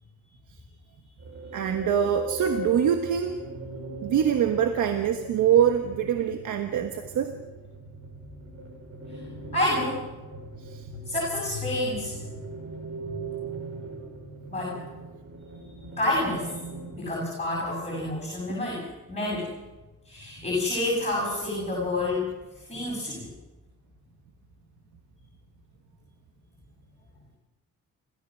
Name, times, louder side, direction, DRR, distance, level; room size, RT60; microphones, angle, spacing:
sound 1, 1.2-17.2, right 2 dB, 50° right, 6.9 m, -39 dB
voice 1, 1.5-3.3 4.0-7.4 10.6-10.9, right 9 dB, 75° right, 6 dB, 1.4 m, -24 dB
voice 2, 9.5-10.0 11.1-12.2 14.5-14.7 15.6-16.5 17.0-19.5 20.1-23.3, left 1 dB, 20° left, -5 dB, 7.3 m, -29 dB
29.5 x 14.5 x 6.5 m, 1.1 s
cardioid pair, 90°, 30 cm